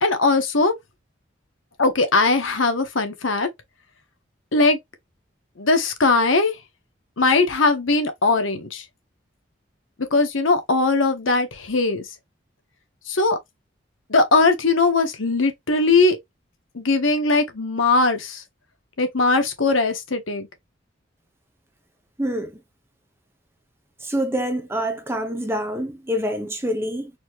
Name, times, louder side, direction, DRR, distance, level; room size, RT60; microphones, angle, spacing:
voice 1, 0.0-0.7 1.8-3.5 4.5-4.8 5.6-6.6 7.2-8.8 10.1-12.1 13.1-13.4 14.1-16.2 16.7-18.4 19.0-20.5, left 3 dB, 85° left, 1.2 m, -20 dB
voice 2, 22.2-22.5 24.0-27.1, equal, 10° right, 0.7 m, -26 dB
4.1 x 2.9 x 3.1 m
head